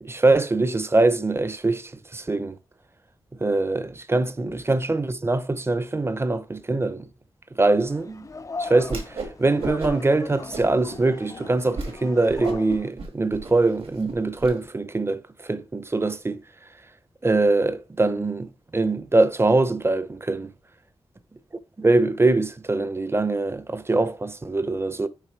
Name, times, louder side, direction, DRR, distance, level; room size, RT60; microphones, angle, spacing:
voice 1, 0.0-2.6 3.4-7.1 7.5-8.3 8.6-16.4 17.2-20.5 21.8-25.1, right 2 dB, 25° right, 0.6 m, -23 dB
sound 1, 7.8-12.9, left 4 dB, 35° left, 0.3 m, -38 dB
Whoosh swoosh swish, 8.8-9.3 9.6-10.1 10.5-11.0 11.4-11.5 11.7-11.9 12.3-14.5, right 3 dB, 80° right, 1.4 m, -33 dB
6.6 x 3.1 x 4.6 m
cardioid pair, 60°, 10 cm